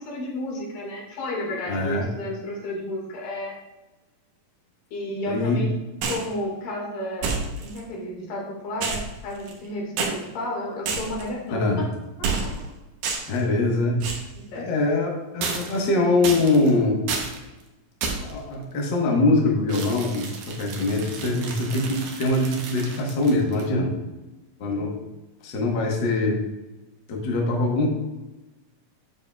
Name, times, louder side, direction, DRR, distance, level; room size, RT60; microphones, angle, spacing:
voice 1, 0.0-3.5 4.9-5.7 6.1-7.4 7.6-11.7 12.2-12.3 14.5-14.7 24.6-24.9, left 1 dB, 80° left, -3 dB, 3.5 m, -32 dB
voice 2, 1.7-2.1 5.3-5.6 11.5-11.9 13.3-14.0 14.5-17.0 18.2-24.0 24.6-25.0 25.4-26.4 27.1-27.9, left 2 dB, 60° left, -1 dB, 1.2 m, -23 dB
sound 1, 6.0-6.3 7.2-7.8 8.8-9.7 10.0-10.1 10.9-11.3 12.2-12.7 13.0-13.4 14.0-14.3 15.4-15.9 16.2-16.7 17.1-17.4 18.0-18.4 19.7-23.7, right 4 dB, 80° right, 2.6 m, -30 dB
9.1 x 7.0 x 2.4 m, 1.1 s
omnidirectional pair, 3.9 m